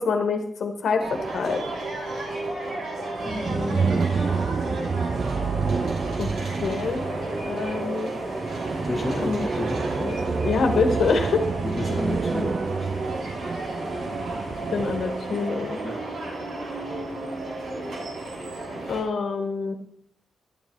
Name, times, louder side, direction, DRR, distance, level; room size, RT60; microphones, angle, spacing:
voice 1, 0.0-1.6 6.2-6.3 6.6-7.0 7.5-8.1 8.9-9.5 10.0-10.2 10.4-11.5 14.7-15.8 18.9-19.7, left 4 dB, 70° left, 4 dB, 1.2 m, -26 dB
sound 1, 1.0-19.0, right 2 dB, 80° right, 3.2 m, -32 dB
voice 2, 3.2-4.5 8.8-9.9 11.6-12.9 15.8-16.1, left 2 dB, 10° left, -6 dB, 1.8 m, -32 dB
sound 2, 3.2-15.2, right 5 dB, 40° right, 0.3 m, -29 dB
12.0 x 8.7 x 4.4 m, 0.68 s
wide cardioid pair, 135°, 0 cm